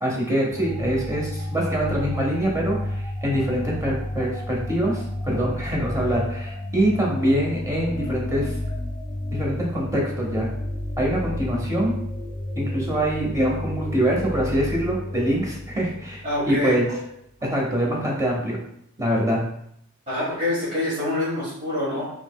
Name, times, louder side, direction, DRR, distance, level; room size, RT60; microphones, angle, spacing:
voice 1, 0.0-8.5 9.3-10.5 11.0-11.9 12.6-16.8 17.4-18.6 19.0-19.4, right 1 dB, 15° right, -2 dB, 0.8 m, -24 dB
sound 1, 0.5-16.9, left 1 dB, 5° left, 0.5 m, -31 dB
voice 2, 16.2-17.1 20.1-22.1, left 1 dB, 35° right, -12 dB, 1.5 m, -26 dB
4.0 x 2.9 x 2.2 m, 0.72 s
head